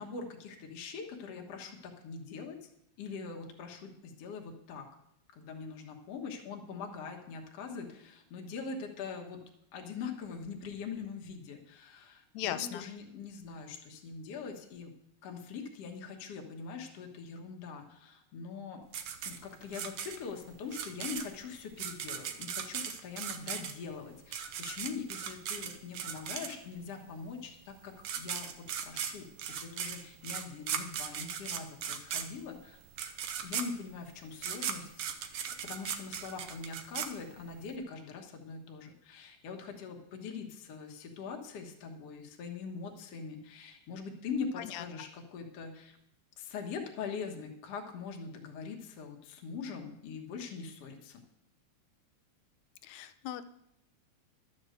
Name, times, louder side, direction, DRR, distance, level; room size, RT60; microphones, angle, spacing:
voice 1, 0.0-2.7 3.0-4.9 5.3-9.4 9.7-14.9 15.2-18.8 19.2-32.8 33.4-35.0 35.6-46.0 46.4-51.2, left 5 dB, 60° left, 2 dB, 2.3 m, -42 dB
voice 2, 12.3-12.9 44.6-45.1 52.8-53.5, left 11 dB, 80° left, 13 dB, 1.9 m, -38 dB
sound 1, 18.9-26.9 27.7-27.8 28.0-37.7, right 8 dB, 65° right, 1.5 m, -38 dB
12.0 x 6.6 x 7.9 m, 0.76 s
omnidirectional pair, 3.3 m